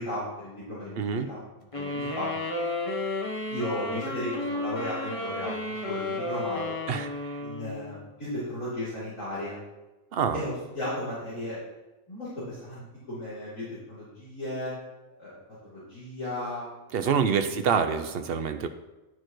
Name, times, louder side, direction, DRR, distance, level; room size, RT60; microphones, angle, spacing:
voice 1, 0.0-1.4 1.7-2.3 3.5-6.8 7.4-9.6 10.3-11.6 12.1-14.7 15.2-16.7 17.5-17.9, left 1 dB, 70° left, -13 dB, 3.9 m, -35 dB
voice 2, 1.0-1.3 6.9-7.1 10.1-10.4 16.9-18.7, right 6 dB, 60° right, 8 dB, 0.7 m, -26 dB
sound 1, 1.7-8.1, left 2 dB, 25° left, 1.0 m, -33 dB
12.0 x 6.6 x 3.1 m, 1.1 s
omnidirectional pair, 1.5 m